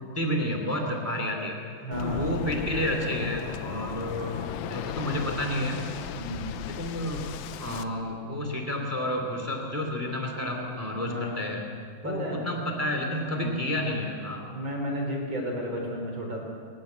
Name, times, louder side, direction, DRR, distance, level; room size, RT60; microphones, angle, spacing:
voice 1, 0.0-1.6 2.0-5.8 6.6-7.3 7.6-11.7 12.0-14.4, left 1 dB, 5° right, 2 dB, 1.8 m, -30 dB
voice 2, 1.8-2.3 6.2-6.5 11.0-11.4 12.0-12.4 13.3-13.7 14.5-16.4, equal, 30° right, -1 dB, 4.5 m, -32 dB
Waves surf, 1.9-7.8, left 9 dB, 80° left, 1.7 m, -36 dB
27.0 x 12.0 x 8.1 m, 2.2 s
omnidirectional pair, 4.2 m